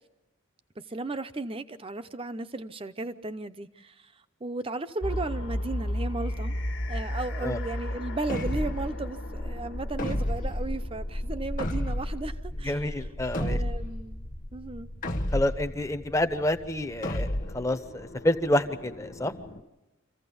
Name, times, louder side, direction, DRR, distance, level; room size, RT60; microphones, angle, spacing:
voice 1, 0.9-4.1 4.4-6.5 6.9-13.1 13.3-14.2 14.5-14.9, right 2 dB, 25° right, 11 dB, 0.6 m, -35 dB
sound 1, 5.0-19.6, left 1 dB, 60° left, 1.6 m, -36 dB
sound 2, 8.3-9.0 10.0-10.6 11.6-12.3 13.3-14.0 15.0-15.7 17.0-17.7, left 1 dB, 40° left, 1.1 m, -30 dB
voice 2, 12.6-13.6 15.3-17.3 17.5-19.3, left 1 dB, 15° left, 9 dB, 0.8 m, -28 dB
26.0 x 15.5 x 7.0 m, 1.1 s
head